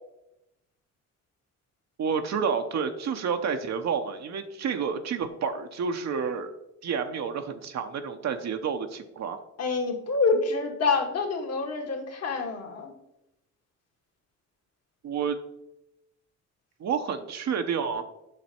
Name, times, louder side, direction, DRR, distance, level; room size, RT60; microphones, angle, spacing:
voice 1, 2.0-6.5 6.8-9.4 15.0-15.4 16.8-18.0, right 6 dB, 60° right, 6 dB, 0.9 m, -29 dB
voice 2, 9.6-12.9, left 4 dB, 55° left, 2 dB, 2.0 m, -27 dB
7.5 x 5.9 x 4.4 m, 0.86 s
cardioid pair, 90°, 30 cm